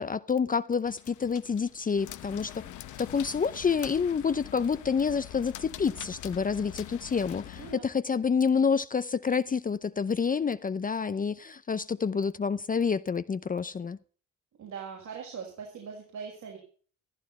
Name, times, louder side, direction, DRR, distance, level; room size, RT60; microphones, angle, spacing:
voice 1, 0.0-2.7 3.0-14.0, left 6 dB, 30° left, 0.6 m, -28 dB
sound 1, 0.9-7.8, left 13 dB, 80° left, 1.1 m, -44 dB
voice 2, 7.6-7.9 14.6-16.6, right 6 dB, 70° right, 5.7 m, -41 dB
15.0 x 13.5 x 4.3 m
cardioid pair, 90°, 30 cm